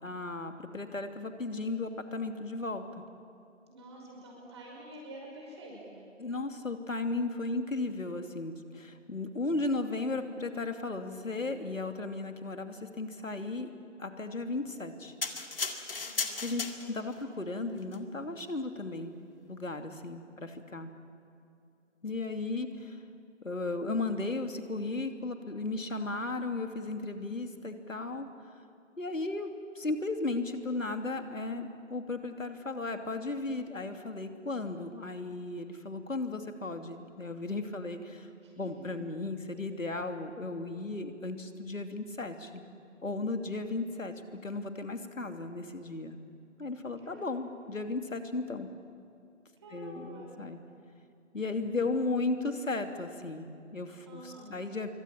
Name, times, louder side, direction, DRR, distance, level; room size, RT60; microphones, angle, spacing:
voice 1, 0.0-2.8 6.2-13.7 14.0-15.1 16.4-19.1 19.5-20.9 22.0-23.0 23.4-28.3 29.0-38.3 38.6-42.6 43.0-44.1 44.4-46.2 46.6-48.7 49.7-50.6 51.3-54.9, left 3 dB, 80° left, 6 dB, 2.9 m, -35 dB
voice 2, 3.7-6.0 15.9-16.5 16.8-16.9 17.2-17.6 20.3-20.4 38.4-38.9 47.0-47.3 49.6-50.4 54.1-54.6, right 1 dB, 20° right, -2 dB, 5.5 m, -49 dB
sound 1, 15.2-17.2 17.8-18.0, left 4 dB, 45° left, 2.1 m, -35 dB
26.5 x 24.0 x 8.9 m, 2.6 s
figure-of-eight pair, 165°, 39 cm